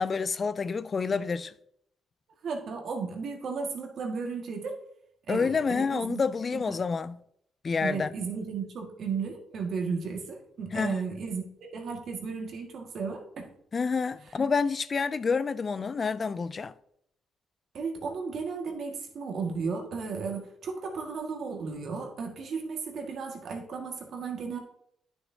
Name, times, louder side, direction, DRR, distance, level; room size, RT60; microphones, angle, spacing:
voice 1, 0.0-1.5 5.3-7.2 7.6-8.1 10.7-11.0 13.7-16.7, left 5 dB, 40° left, 0.3 m, -28 dB
voice 2, 2.4-4.8 5.3-6.2 6.5-6.6 7.8-11.4 11.7-13.5 17.7-24.6, right 5 dB, 60° right, 1.8 m, -34 dB
9.6 x 6.3 x 2.8 m
cardioid pair, 90°, 0 cm